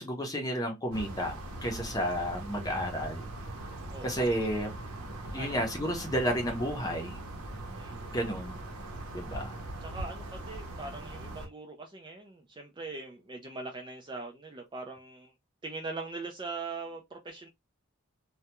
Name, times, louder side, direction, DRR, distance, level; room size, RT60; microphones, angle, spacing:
voice 1, 0.0-3.3 4.0-4.7 5.3-7.2 8.1-8.6 9.1-9.6, equal, 15° left, 0.6 m, -32 dB
sound 1, 0.9-11.5, right 1 dB, 80° right, 0.7 m, -41 dB
voice 2, 3.9-4.2 5.3-5.6 7.8-8.1 9.8-15.3 15.6-17.5, right 3 dB, 20° right, 0.3 m, -41 dB
2.3 x 2.1 x 2.8 m
head